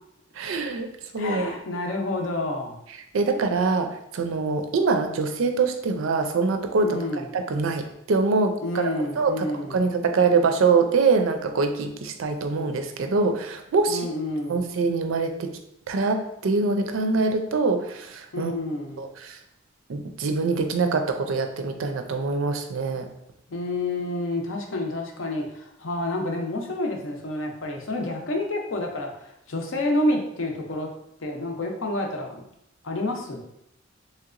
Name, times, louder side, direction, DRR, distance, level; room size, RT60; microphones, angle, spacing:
voice 1, 0.4-0.9 1.1-1.5 3.1-3.9 4.1-6.9 7.3-14.1 14.5-15.5 15.9-18.5 19.0-19.4 19.9-23.1, right 4 dB, 80° right, 5 dB, 0.4 m, -24 dB
voice 2, 1.2-2.8 6.8-7.3 8.6-9.8 13.9-14.7 18.3-19.0 23.5-30.9 31.2-32.4 32.8-33.4, left 1 dB, 75° left, 2 dB, 0.6 m, -29 dB
3.2 x 2.8 x 2.4 m, 0.78 s
head